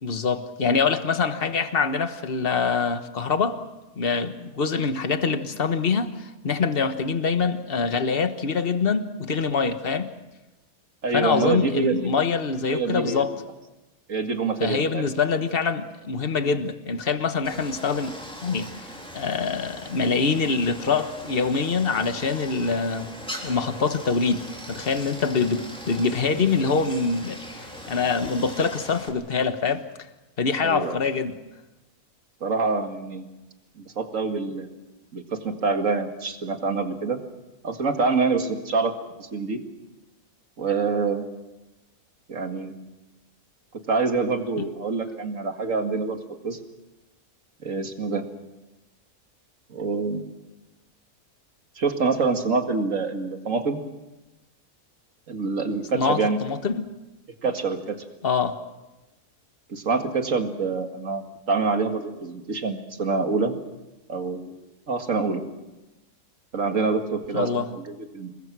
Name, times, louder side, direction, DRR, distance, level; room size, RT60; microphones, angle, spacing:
voice 1, 0.0-3.6 4.0-10.1 11.1-13.3 14.6-18.1 18.4-23.1 23.4-29.8 30.4-31.3 44.6-44.7 55.9-56.8 58.2-58.6 67.3-67.7, left 5 dB, 40° left, 9 dB, 1.5 m, -25 dB
voice 2, 11.0-12.1 12.7-13.3 14.1-15.0 30.6-31.0 32.4-33.3 33.8-34.7 35.1-37.2 37.6-38.9 39.2-39.6 40.6-41.2 42.3-42.7 43.9-46.2 46.4-46.6 47.6-48.2 49.7-50.3 51.8-53.8 55.3-56.4 57.4-58.0 59.7-63.6 64.1-64.5 64.9-65.4 66.5-68.3, right 4 dB, 60° right, 5 dB, 2.4 m, -26 dB
Stream, 17.4-29.1, equal, 5° left, 3.8 m, -40 dB
28.0 x 21.5 x 6.2 m, 1.0 s
omnidirectional pair, 1.6 m